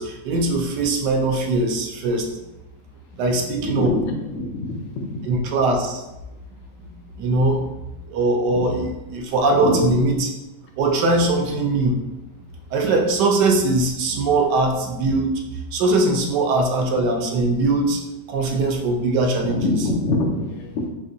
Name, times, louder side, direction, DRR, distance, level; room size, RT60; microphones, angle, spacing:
voice 1, 0.0-2.4 3.1-3.9 5.3-6.0 6.8-6.9 7.2-10.3 10.8-12.0 12.7-15.4 15.7-18.0 18.3-19.6, right 2 dB, 80° right, 2 dB, 1.2 m, -21 dB
voice 2, 3.5-5.2 9.5-9.9 19.4-20.9, left 2 dB, 90° left, 2 dB, 1.3 m, -25 dB
4.7 x 2.6 x 2.6 m, 0.98 s
omnidirectional pair, 1.9 m